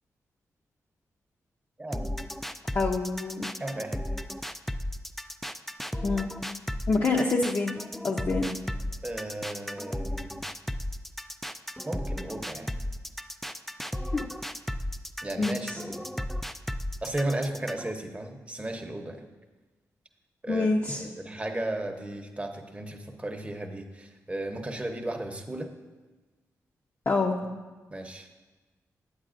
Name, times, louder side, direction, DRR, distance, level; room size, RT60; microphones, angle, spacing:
voice 1, 1.8-2.2 3.6-4.0 9.0-10.4 11.8-12.7 15.2-16.1 17.0-19.2 20.4-25.7 27.9-28.3, right 1 dB, 20° right, 4 dB, 0.8 m, -35 dB
sound 1, 1.9-17.9, left 1 dB, 5° left, 0.3 m, -34 dB
voice 2, 2.7-3.5 6.0-6.3 6.9-7.7 8.0-8.5 14.1-14.3 15.4-15.8 20.5-21.0 27.1-27.3, left 3 dB, 45° left, -1 dB, 0.6 m, -26 dB
8.8 x 8.0 x 2.5 m, 1.3 s
cardioid pair, 60°, 6 cm